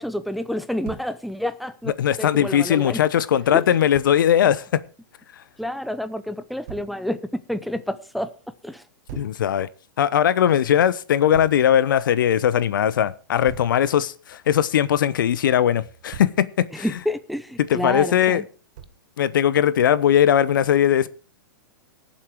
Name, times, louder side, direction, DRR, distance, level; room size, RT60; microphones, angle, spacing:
voice 1, 0.0-3.0 3.5-3.6 5.6-8.3 8.6-8.8 16.7-18.4, left 1 dB, ahead, 0.6 m, -29 dB
Thump thud, 0.8-1.1 3.9-4.1 6.7-6.9 9.1-9.4 11.3-11.6 13.5-13.8 15.8-16.4 18.8-19.1, right 9 dB, 55° right, 1.4 m, -40 dB
voice 2, 2.0-4.8 9.2-9.7 10.0-16.9 17.6-18.4 19.2-21.1, left 10 dB, 75° left, 0.9 m, -19 dB
18.0 x 7.4 x 4.6 m
hypercardioid pair, 135°, 11 cm